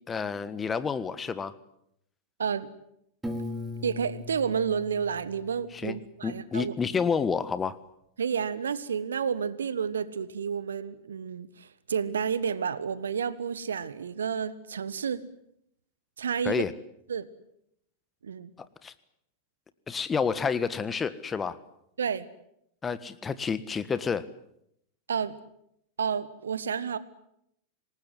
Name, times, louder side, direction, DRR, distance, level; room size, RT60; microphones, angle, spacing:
voice 1, 0.1-1.5 5.7-6.0 6.2-7.8 16.4-16.7 18.8-18.9 19.9-21.6 22.8-24.3, left 6 dB, 20° left, 14 dB, 1.5 m, -29 dB
voice 2, 2.4-2.7 3.8-6.7 8.2-15.2 16.2-16.7 17.1-17.3 18.2-18.5 22.0-22.3 25.1-25.4 26.0-27.0, right 7 dB, 70° right, 17 dB, 1.4 m, -30 dB
Piano, 3.2-6.2, left 2 dB, 5° right, 4.4 m, -39 dB
27.0 x 19.5 x 9.8 m, 0.77 s
figure-of-eight pair, 90°, 0 cm